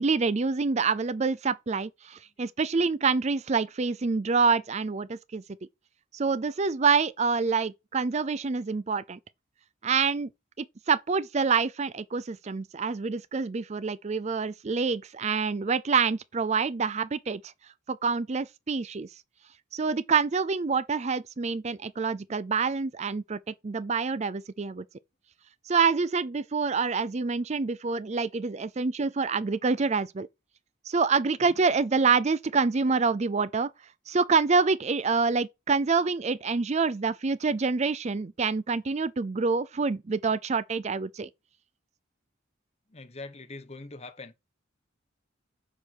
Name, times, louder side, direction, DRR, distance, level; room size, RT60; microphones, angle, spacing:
voice 1, 0.0-5.4 6.1-9.2 9.8-10.3 10.6-17.5 17.9-19.1 19.7-24.8 25.7-30.3 30.9-33.7 34.1-41.3, right 4 dB, 35° right, 0.4 m, -26 dB
voice 2, 42.9-44.3, left 3 dB, 30° left, 1.1 m, -43 dB
10.0 x 4.6 x 6.4 m
head